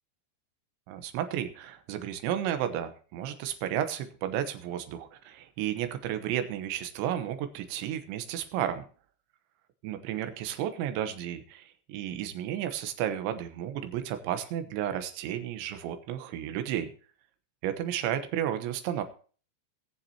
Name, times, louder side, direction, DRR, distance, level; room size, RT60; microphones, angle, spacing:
voice 1, 0.9-8.8 9.8-16.9 17.6-19.0, right 10 dB, 80° right, 8 dB, 3.3 m, -32 dB
20.5 x 7.2 x 3.0 m, 0.40 s
omnidirectional pair, 5.5 m